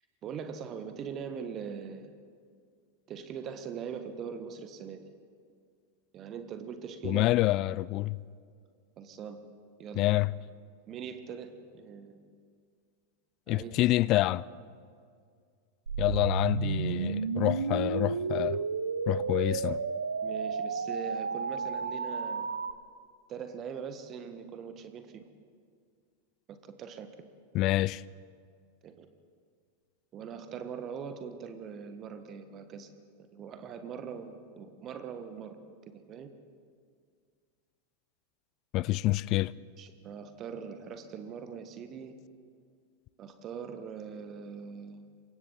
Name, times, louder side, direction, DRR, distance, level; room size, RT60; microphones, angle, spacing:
voice 1, 0.2-2.1 3.1-5.0 6.1-7.3 9.0-9.4 9.8-10.2 10.9-12.2 13.5-13.7 20.2-22.5 23.3-25.3 26.5-27.1 28.8-29.1 30.1-32.9 33.2-35.6 35.9-36.3 39.8-42.2 43.2-45.1, right 7 dB, 30° right, 1.5 m, -41 dB
voice 2, 7.0-8.2 10.0-10.3 13.5-14.4 16.0-18.6 19.1-19.8 27.5-28.0 38.7-39.5, left 17 dB, 40° left, 0.4 m, -27 dB
sound 1, 15.9-22.7, right 5 dB, 75° right, 0.8 m, -32 dB
28.0 x 24.0 x 4.1 m
figure-of-eight pair, 90°, 0 cm